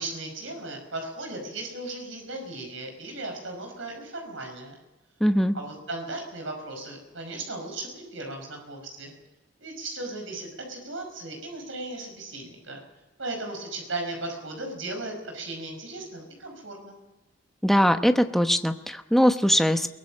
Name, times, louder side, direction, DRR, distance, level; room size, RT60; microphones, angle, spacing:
voice 1, 0.0-4.7 5.5-9.1 9.6-12.8 13.2-17.0, right 2 dB, 80° right, 3 dB, 5.4 m, -36 dB
voice 2, 5.2-5.5 17.6-19.9, equal, ahead, 7 dB, 0.9 m, -21 dB
22.5 x 19.0 x 7.4 m, 1.1 s
head